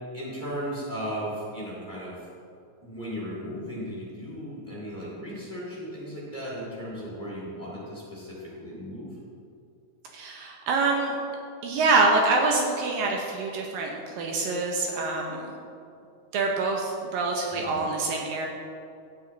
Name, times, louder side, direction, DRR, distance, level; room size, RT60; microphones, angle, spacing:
voice 1, 0.1-2.3 2.8-9.1 17.5-17.9, equal, 15° left, -7 dB, 2.7 m, -36 dB
voice 2, 10.1-11.2 11.6-15.5 16.3-18.5, right 3 dB, 75° right, 1 dB, 2.5 m, -25 dB
12.5 x 9.7 x 3.9 m, 2.5 s
omnidirectional pair, 4.3 m